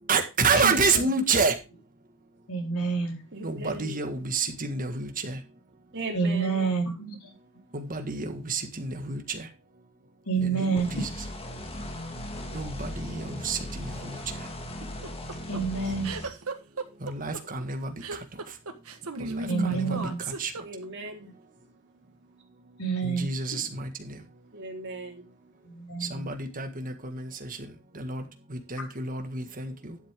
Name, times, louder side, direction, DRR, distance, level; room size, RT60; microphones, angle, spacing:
voice 1, 0.1-1.6 3.4-5.4 7.7-9.5 10.4-11.1 12.5-14.5 17.0-18.6 19.2-20.5 23.0-24.3 26.0-30.0, right 4 dB, 40° right, 1.7 m, -30 dB
voice 2, 2.5-3.2 6.1-7.3 10.3-10.9 15.5-16.1 19.5-20.2 22.8-23.3 23.5-23.6 25.6-26.3, right 5 dB, 90° left, 4.3 m, -28 dB
voice 3, 3.3-4.0 5.9-6.7 15.8-15.9 16.2-16.4 20.6-21.3 24.5-25.3, right 2 dB, 55° right, 3.1 m, -38 dB
sound 1, 10.8-16.3, left 1 dB, 25° left, 1.8 m, -38 dB
sound 2, 14.8-21.1, right 2 dB, 90° right, 1.5 m, -35 dB
11.5 x 7.8 x 3.6 m
head